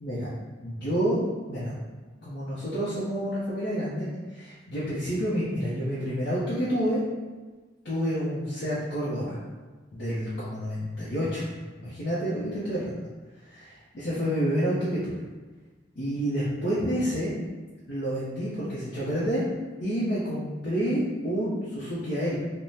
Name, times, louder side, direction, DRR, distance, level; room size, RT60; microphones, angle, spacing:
voice 1, 0.6-1.7 2.2-7.0 7.8-9.4 9.9-11.5 11.8-13.0 13.6-13.7 13.9-15.2 16.0-17.3 17.9-19.5 19.8-22.3, equal, 60° left, -9 dB, 0.6 m, -29 dB
3.5 x 2.0 x 2.7 m, 1.3 s
head